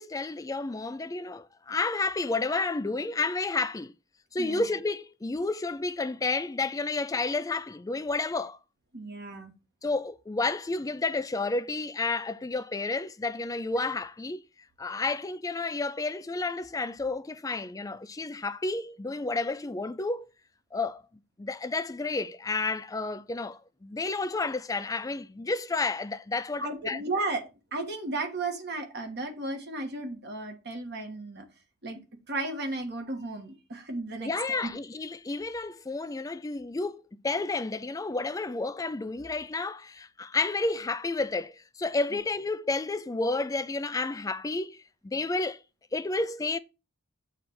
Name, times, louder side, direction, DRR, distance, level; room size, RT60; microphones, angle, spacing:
voice 1, 0.0-3.9 4.3-8.6 9.8-14.4 14.8-20.3 20.7-21.0 21.4-27.0 34.2-45.6 45.9-46.6, left 3 dB, 15° left, 0.3 m, -31 dB
voice 2, 8.9-9.5 26.6-31.4 31.8-32.0 32.3-34.7, right 2 dB, 50° right, 1.6 m, -34 dB
7.8 x 3.3 x 5.9 m
head